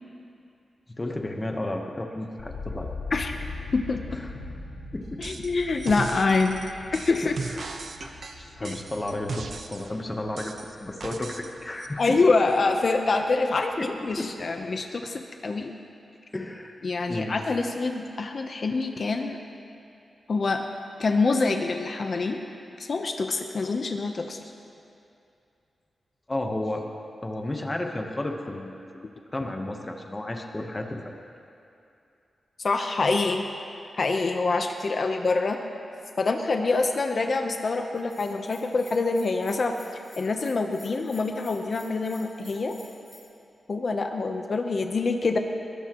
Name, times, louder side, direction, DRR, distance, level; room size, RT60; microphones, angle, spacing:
voice 1, 1.0-3.0 4.2-4.3 4.9-5.2 7.2-7.3 8.0-8.1 8.4-9.4 9.7-12.2 13.8-13.9 14.2-14.3 16.3-16.7 17.1-17.3 26.3-26.9 27.2-29.0 29.3-31.2, left 1 dB, 20° left, 2 dB, 1.0 m, -32 dB
sound 1, 2.4-12.4 12.7-13.4, left 3 dB, 80° left, 1.7 m, -41 dB
voice 2, 3.7-4.2 5.2-6.6 6.9-7.4 8.6-8.8 12.0-15.7 16.8-19.4 20.3-20.6 21.0-22.4 22.8-24.4 32.6-33.4 33.9-35.6 36.2-39.8 40.2-42.8 43.7-45.4, left 3 dB, 45° left, 4 dB, 0.8 m, -25 dB
sound 2, 5.2-5.5 5.8-9.9 10.4-11.5 11.8-11.9, right 4 dB, 55° right, 0.9 m, -37 dB
Bell, 37.9-43.2, equal, 5° right, 4.6 m, -51 dB
21.0 x 21.0 x 3.0 m, 2.6 s
wide cardioid pair, 165°, 0 cm